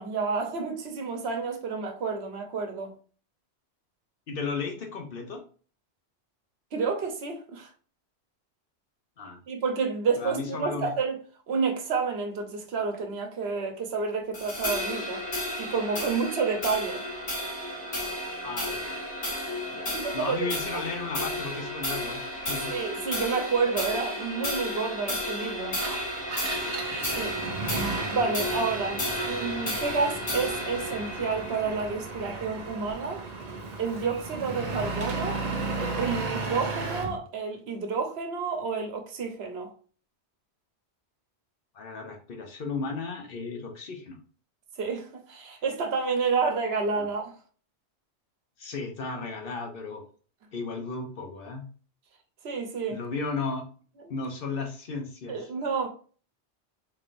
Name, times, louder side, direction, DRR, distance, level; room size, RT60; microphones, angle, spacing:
voice 1, 0.0-2.9 6.7-7.7 9.5-11.2 11.5-15.2 15.6-17.1 19.9-20.8 22.7-25.8 27.1-27.4 28.1-33.2 33.8-35.4 36.0-39.7 44.8-47.3 52.4-53.0 54.0-54.1 55.3-55.9, right 5 dB, 70° right, 1.0 m, -30 dB
voice 2, 4.3-5.4 9.2-9.4 10.2-10.9 18.4-18.8 19.7-22.7 41.7-44.2 47.0-47.1 48.6-50.0 50.5-51.6 52.9-53.7 54.1-55.5, left 4 dB, 60° left, 0.9 m, -35 dB
sound 1, 14.3-32.9, left 1 dB, 85° left, 2.3 m, -33 dB
Engine, 25.7-37.2, right 3 dB, 45° right, 0.7 m, -35 dB
3.9 x 3.4 x 2.5 m
omnidirectional pair, 1.1 m